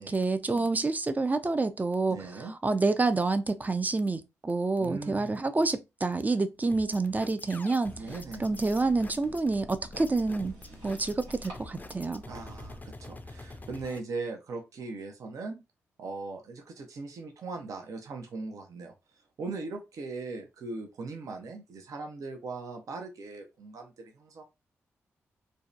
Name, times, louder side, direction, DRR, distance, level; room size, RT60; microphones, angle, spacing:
voice 1, 0.0-2.2 2.6-8.0 8.4-10.5 10.8-12.2, right 3 dB, 25° right, 0.4 m, -28 dB
voice 2, 2.1-2.5 4.8-5.4 8.0-8.5 12.3-15.6 16.0-18.9 19.4-24.4, right 3 dB, 65° right, 0.6 m, -39 dB
sound 1, 6.7-14.0, left 2 dB, 30° left, 0.5 m, -46 dB
sound 2, 7.8-12.8, equal, 85° right, 1.1 m, -49 dB
2.6 x 2.1 x 2.4 m
supercardioid pair, 40°, 6 cm